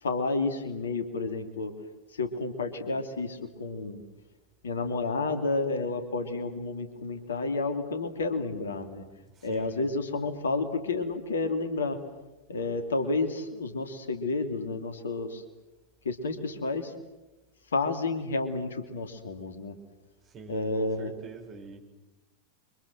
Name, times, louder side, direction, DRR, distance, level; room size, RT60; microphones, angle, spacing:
voice 1, 0.0-1.7 2.1-4.0 4.6-9.0 9.4-12.0 12.5-15.4 16.0-16.9 17.7-19.8 20.5-21.2, left 3 dB, 65° left, 8 dB, 2.8 m, -30 dB
voice 2, 9.3-9.9 20.2-21.8, right 4 dB, 30° right, 4 dB, 5.4 m, -45 dB
28.5 x 25.0 x 7.8 m, 1.0 s
figure-of-eight pair, 90°, 0 cm